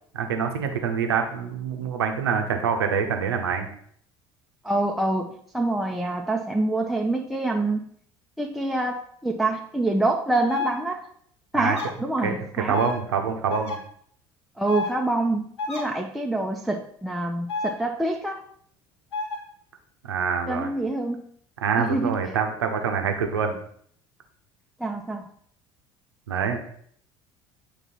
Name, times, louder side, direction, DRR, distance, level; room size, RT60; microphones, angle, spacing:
voice 1, 0.1-3.7 11.5-11.8 12.2-12.4 12.7-13.8 20.0-20.7 21.6-23.5 26.3-26.6, right 6 dB, 80° right, 5 dB, 0.7 m, -25 dB
voice 2, 4.6-7.9 8.4-11.1 11.5-12.8 14.6-18.4 20.5-21.2 21.8-22.2 24.8-25.3, right 2 dB, ahead, 1 dB, 0.6 m, -26 dB
sound 1, 10.5-10.7 11.6-11.9 12.7-12.9 13.5-13.8 14.7-14.9 15.6-15.8 17.5-17.7 19.1-19.4, left 4 dB, 90° left, 1.5 m, -29 dB
7.6 x 3.0 x 4.1 m, 0.63 s
figure-of-eight pair, 60°, 13 cm